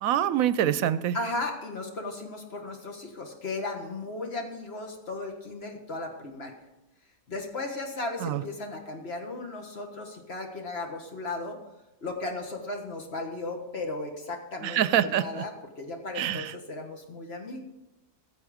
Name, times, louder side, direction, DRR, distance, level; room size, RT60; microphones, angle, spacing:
voice 1, 0.0-1.2 8.2-8.4 14.6-15.4 16.2-16.5, right 10 dB, 80° right, 15 dB, 1.0 m, -25 dB
voice 2, 1.1-6.5 7.3-11.6 12.0-17.6, left 2 dB, 50° left, 3 dB, 1.7 m, -36 dB
15.5 x 7.3 x 5.0 m, 0.98 s
omnidirectional pair, 1.5 m